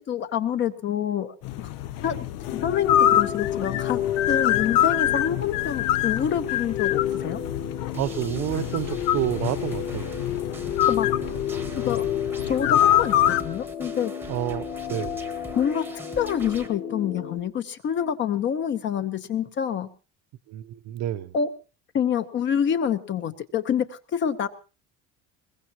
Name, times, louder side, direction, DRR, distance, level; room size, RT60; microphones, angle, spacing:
voice 1, 0.1-1.7 2.0-2.3 2.5-4.0 4.3-7.4 10.9-11.1 11.8-12.1 12.5-14.1 15.6-15.8 16.2-19.9 21.3-21.5 21.9-24.5, left 8 dB, 35° left, 1.0 m, -27 dB
sound 1, 1.4-13.4, left 12 dB, 75° left, 1.0 m, -25 dB
sound 2, 2.5-17.4, left 10 dB, 50° left, 2.8 m, -31 dB
sound 3, 7.9-16.7, right 3 dB, 5° right, 1.1 m, -43 dB
voice 2, 7.9-10.1 14.3-15.3 20.5-21.3, right 13 dB, 50° right, 0.8 m, -29 dB
22.0 x 20.5 x 3.0 m
cardioid pair, 175°, 34 cm